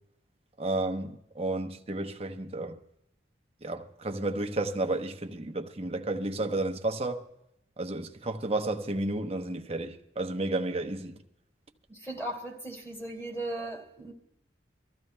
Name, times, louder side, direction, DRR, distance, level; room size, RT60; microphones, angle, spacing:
voice 1, 0.6-2.8 3.6-7.2 7.8-11.2, right 2 dB, 35° right, 0.9 m, -32 dB
voice 2, 11.9-14.1, right 1 dB, 15° left, 2.6 m, -37 dB
25.0 x 14.5 x 2.2 m
head